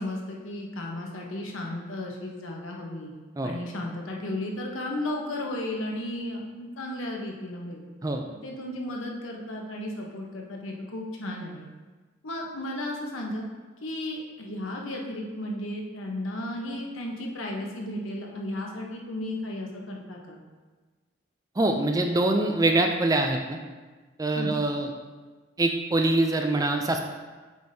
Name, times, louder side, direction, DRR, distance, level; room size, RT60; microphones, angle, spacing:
voice 1, 0.0-3.1 3.4-7.8 8.4-11.7 12.2-13.4 13.8-20.4 24.4-24.6, left 1 dB, 80° left, 0 dB, 1.0 m, -34 dB
voice 2, 21.6-23.6 24.2-24.9 25.6-27.0, right 2 dB, 15° right, 4 dB, 0.3 m, -24 dB
7.8 x 5.1 x 2.7 m, 1.3 s
head